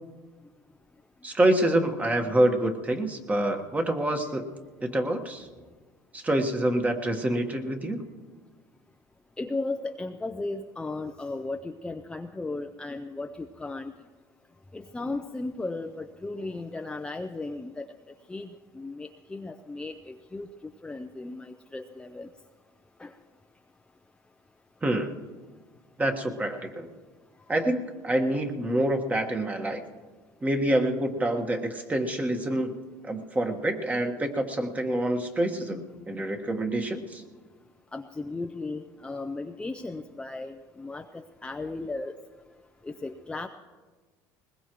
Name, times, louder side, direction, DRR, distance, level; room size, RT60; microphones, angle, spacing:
voice 1, 1.2-4.4 4.8-5.5 6.1-8.0 24.8-25.2 26.0-26.9 27.5-29.8 30.4-32.7 33.0-37.2, right 1 dB, 15° right, 5 dB, 1.5 m, -26 dB
voice 2, 9.4-13.9 14.7-17.9 18.3-18.5 18.7-20.5 20.8-22.3 23.0-23.1 37.9-42.2 42.8-43.5, left 2 dB, 10° left, 4 dB, 0.6 m, -35 dB
20.5 x 20.5 x 3.1 m, 1.4 s
supercardioid pair, 110°, 9 cm